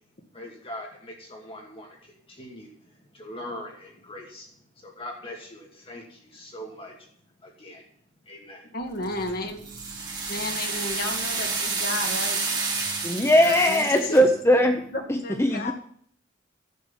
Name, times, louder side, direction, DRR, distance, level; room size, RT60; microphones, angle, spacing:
voice 1, 0.3-2.0 2.3-2.7 3.1-4.5 4.8-6.9 7.4-7.8 8.3-8.6, left 1 dB, 30° left, 0 dB, 2.4 m, -41 dB
voice 2, 8.7-9.6 10.3-12.4 13.3-14.3 14.9-15.7, left 2 dB, 50° left, 4 dB, 1.9 m, -32 dB
sound 1, 9.0-15.0, right 4 dB, 5° right, 5.4 m, -47 dB
sound 2, 9.0-14.2, right 4 dB, 20° right, 3.1 m, -29 dB
voice 3, 13.0-14.8 15.4-15.7, equal, 15° left, 5 dB, 0.8 m, -19 dB
11.0 x 8.0 x 7.1 m, 0.62 s
head